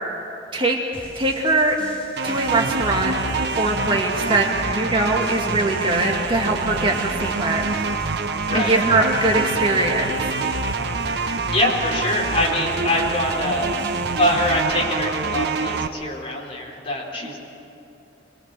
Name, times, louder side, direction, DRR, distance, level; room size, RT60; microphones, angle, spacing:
sound 1, 0.9-14.6, equal, 5° left, 6.3 m, -41 dB
voice 1, 1.2-1.8 2.2-3.2 3.6-7.6 8.5-10.1, right 2 dB, 25° right, 0 dB, 2.1 m, -21 dB
sound 2, 2.2-15.9, right 4 dB, 65° right, 1.0 m, -26 dB
voice 2, 11.5-13.7 14.2-17.4, left 1 dB, 30° left, -2 dB, 4.0 m, -24 dB
26.0 x 21.0 x 7.7 m, 2.9 s
head